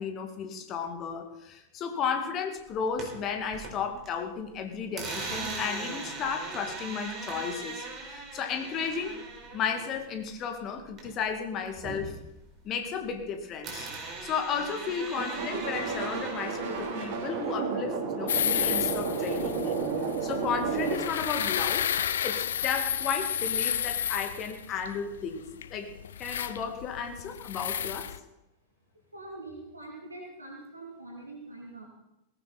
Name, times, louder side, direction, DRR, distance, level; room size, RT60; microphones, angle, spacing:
voice 1, 0.0-9.2 9.5-12.2 12.6-13.9 14.2-19.8 20.2-21.9 22.2-25.9 26.2-28.1, left 6 dB, 35° left, 6 dB, 2.1 m, -34 dB
sound 1, 2.7-4.1 4.4-11.3 11.6-13.3 13.6-17.2, right 3 dB, 30° right, 4.6 m, -40 dB
sound 2, 15.2-21.0, right 5 dB, 50° right, 2.7 m, -32 dB
sound 3, 18.3-28.2, left 9 dB, 65° left, 0.6 m, -31 dB
voice 2, 29.1-31.9, right 2 dB, 80° right, -1 dB, 2.4 m, -44 dB
18.0 x 15.0 x 4.2 m, 0.90 s
figure-of-eight pair, 90°, 0 cm